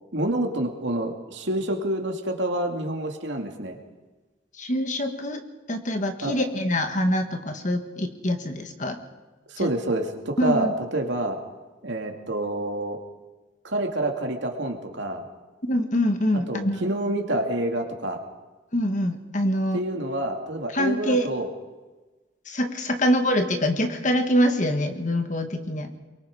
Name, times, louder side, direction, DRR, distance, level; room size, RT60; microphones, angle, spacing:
voice 1, 0.1-3.8 6.2-6.3 9.5-11.4 11.8-13.0 13.6-15.2 16.5-18.2 19.7-21.5, right 1 dB, 70° right, 3 dB, 2.6 m, -27 dB
voice 2, 4.6-5.4 5.7-9.0 9.6-9.7 10.4-10.7 15.7-16.9 18.7-19.8 20.7-21.3 22.4-26.0, equal, 40° left, 6 dB, 1.7 m, -24 dB
23.5 x 23.0 x 5.0 m, 1.2 s
head